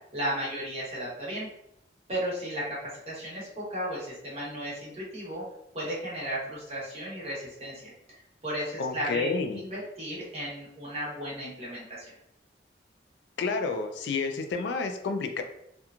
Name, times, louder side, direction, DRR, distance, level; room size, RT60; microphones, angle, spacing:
voice 1, 0.1-1.5 2.1-5.4 5.7-12.1, equal, 35° right, -6 dB, 1.0 m, -35 dB
voice 2, 8.8-9.6 13.4-15.4, left 4 dB, 70° left, 6 dB, 0.3 m, -30 dB
2.9 x 2.2 x 2.4 m, 0.76 s
head